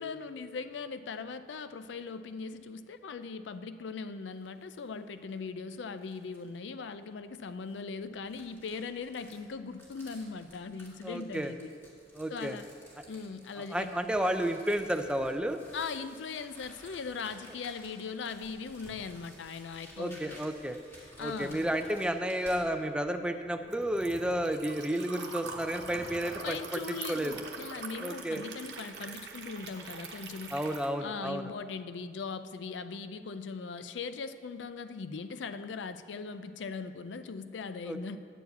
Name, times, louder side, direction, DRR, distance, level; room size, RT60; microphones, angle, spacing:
voice 1, 0.0-11.7 12.3-12.7 13.1-13.9 15.7-20.4 21.2-21.7 26.4-30.6 31.0-38.2, left 5 dB, 90° left, 11 dB, 0.4 m, -40 dB
sound 1, 4.3-4.9 5.3-5.4 6.0-6.6 7.4-22.6, equal, 15° left, 2.1 m, -55 dB
voice 2, 11.0-11.5 12.1-12.6 13.7-15.6 20.0-20.8 21.2-26.8 27.1-27.4 28.0-28.4 30.5-31.5 37.8-38.0, right 1 dB, 5° right, 6 dB, 0.4 m, -32 dB
Zipper (clothing), 21.0-22.5 23.3-24.6 25.4-26.5 27.1-27.5, left 1 dB, 35° left, 2.1 m, -51 dB
Liquid, 22.6-30.9, right 5 dB, 65° right, 1.0 m, -44 dB
9.9 x 4.7 x 8.0 m, 2.2 s
head